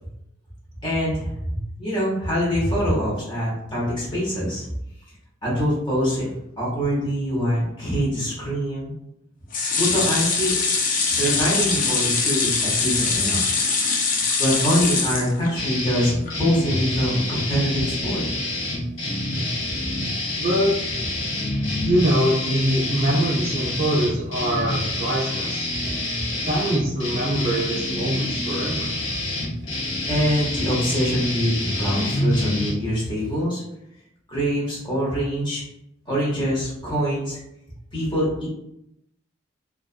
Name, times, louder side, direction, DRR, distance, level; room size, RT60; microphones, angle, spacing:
voice 1, 0.8-4.7 5.4-8.9 9.8-10.6 11.1-13.4 14.4-18.2 30.1-33.6 34.3-35.6 36.1-37.4 37.9-38.5, equal, 25° left, -6 dB, 0.9 m, -24 dB
sound 1, 9.5-15.8 16.2-16.3 16.6-16.7, left 4 dB, 40° left, 0.3 m, -23 dB
sound 2, 15.6-32.7, left 1 dB, 70° left, 0.7 m, -27 dB
voice 2, 20.4-20.7 21.8-25.7 26.4-28.9, equal, 35° right, -7 dB, 0.5 m, -23 dB
2.3 x 2.3 x 2.4 m, 0.84 s
head